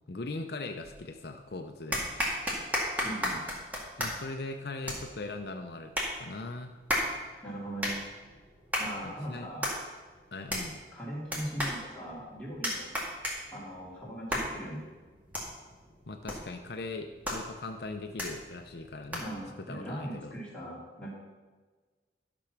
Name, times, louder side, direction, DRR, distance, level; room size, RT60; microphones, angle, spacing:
voice 1, 0.1-2.1 4.0-6.8 9.0-9.5 10.3-10.8 16.1-19.3 19.6-20.3, left 3 dB, 65° left, 5 dB, 0.6 m, -40 dB
sound 1, 0.8-1.4 1.9-19.5, equal, 10° right, 1.9 m, -36 dB
voice 2, 3.0-3.4 7.4-8.0 8.8-9.7 10.9-12.9 13.5-14.8 19.2-21.1, right 1 dB, 5° left, -6 dB, 2.6 m, -39 dB
12.0 x 6.1 x 5.9 m, 1.3 s
head